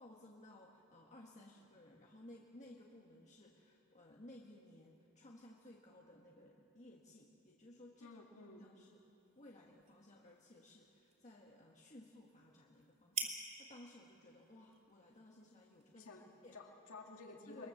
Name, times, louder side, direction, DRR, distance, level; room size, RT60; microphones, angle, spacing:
voice 1, 0.0-8.2 8.6-9.0 9.3-16.1 16.4-16.6 17.5-17.7, left 1 dB, 35° left, -2 dB, 1.5 m, -58 dB
voice 2, 8.0-8.7 15.9-17.7, left 3 dB, 65° left, 0 dB, 2.3 m, -53 dB
sound 1, 8.8-16.6, right 5 dB, 30° right, 3.6 m, -51 dB
23.0 x 22.5 x 7.2 m, 2.8 s
head